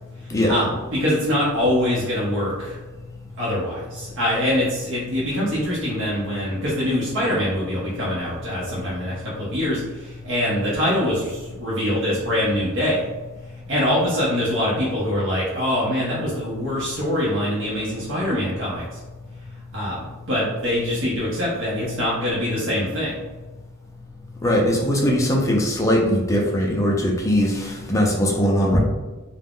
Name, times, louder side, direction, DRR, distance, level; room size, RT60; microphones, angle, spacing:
voice 1, 0.2-2.8 3.4-13.0 13.7-19.0 19.7-23.2, left 1 dB, 60° right, -7 dB, 0.6 m, -24 dB
voice 2, 24.4-28.8, equal, 15° left, -1 dB, 0.3 m, -20 dB
2.4 x 2.0 x 3.4 m, 1.2 s
head